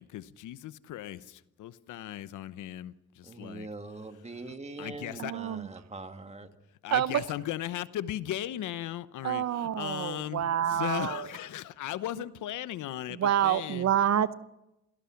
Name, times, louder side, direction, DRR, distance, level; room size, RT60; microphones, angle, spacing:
voice 1, 0.0-3.7 4.4-5.3 6.8-13.9, left 13 dB, 80° left, 0.9 m, -37 dB
voice 2, 3.2-6.5, right 3 dB, 20° right, 2.0 m, -42 dB
voice 3, 5.2-5.7 6.9-7.2 9.2-11.3 13.2-14.3, right 10 dB, 60° right, 0.8 m, -27 dB
27.5 x 18.0 x 5.9 m
cardioid pair, 90°, 30 cm